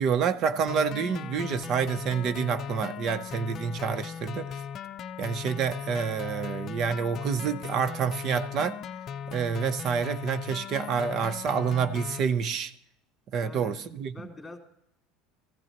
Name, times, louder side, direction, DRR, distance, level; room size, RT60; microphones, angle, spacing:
voice 1, 0.0-4.5 5.2-8.8 9.3-12.7 13.3-14.1, right 6 dB, 45° right, 0.8 m, -28 dB
sound 1, 0.7-12.2, left 8 dB, 40° left, 0.6 m, -38 dB
voice 2, 13.4-13.8 14.1-14.6, left 3 dB, 10° left, 2.7 m, -44 dB
19.0 x 15.0 x 3.0 m
supercardioid pair, 135°, 0 cm